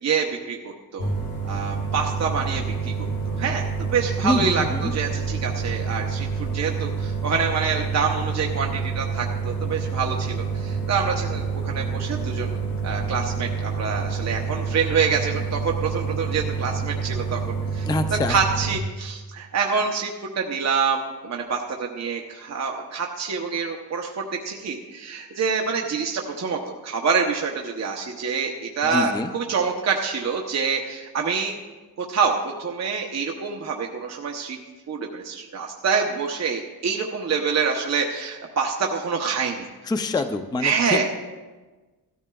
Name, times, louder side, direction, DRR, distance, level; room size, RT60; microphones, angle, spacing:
voice 1, 0.0-1.1 1.4-17.4 17.7-17.9 18.3-20.1 20.4-31.5 32.0-34.6 34.9-39.7 40.6-41.1, right 5 dB, 40° right, 1 dB, 0.8 m, -26 dB
sound 1, 1.0-18.8, right 5 dB, 60° left, 2.0 m, -28 dB
voice 2, 4.2-4.9 17.9-18.4 28.8-29.3 39.8-41.1, left 2 dB, 10° left, 9 dB, 0.4 m, -25 dB
16.5 x 13.5 x 2.3 m, 1.3 s
wide cardioid pair, 165°, 40 cm